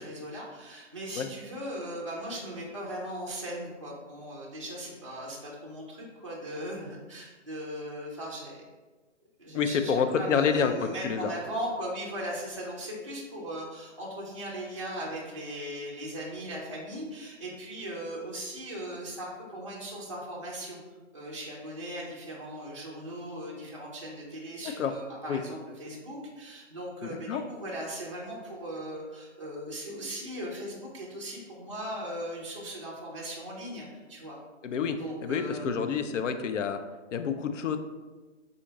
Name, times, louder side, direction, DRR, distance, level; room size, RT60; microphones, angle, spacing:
voice 1, 0.0-8.6 9.4-20.8 21.1-34.4 35.0-36.1, right 1 dB, 25° right, -5 dB, 0.4 m, -38 dB
voice 2, 9.5-11.3 24.6-24.9 25.3-25.4 27.3-27.4 34.6-36.8 37.1-37.8, left 6 dB, 75° left, 8 dB, 0.5 m, -28 dB
3.7 x 2.1 x 3.8 m, 1.3 s
hypercardioid pair, 160°, 38 cm